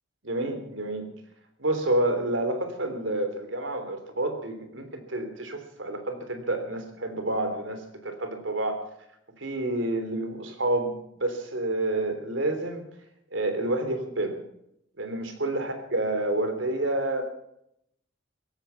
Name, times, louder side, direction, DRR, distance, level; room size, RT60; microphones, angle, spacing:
voice 1, 0.2-1.1 1.6-8.8 9.4-10.9 11.2-12.8 13.3-14.4 15.0-17.2, right 1 dB, 85° right, 7 dB, 3.4 m, -29 dB
17.0 x 14.5 x 5.8 m, 0.76 s
head